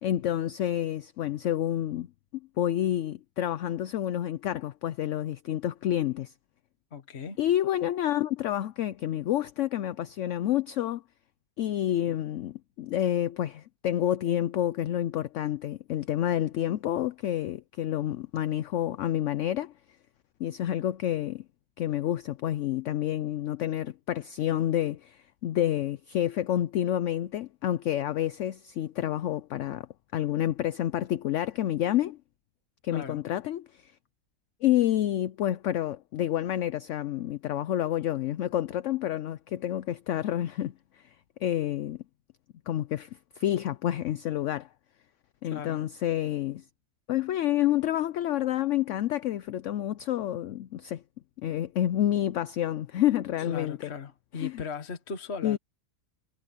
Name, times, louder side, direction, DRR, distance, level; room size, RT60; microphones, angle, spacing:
voice 1, 0.0-2.1 2.6-6.3 7.4-11.0 11.6-19.7 20.4-21.4 21.8-29.9 30.1-32.2 32.8-33.9 34.6-41.1 41.4-42.0 42.7-43.1 43.4-44.7 45.4-46.6 47.1-51.0 51.4-53.9 54.4-54.6 55.4-55.6, left 12 dB, 65° left, 0.8 m, -29 dB
voice 2, 6.9-7.4 32.9-33.2 45.4-45.8 53.4-55.6, left 5 dB, 50° left, 1.6 m, -38 dB
omnidirectional pair, 1.5 m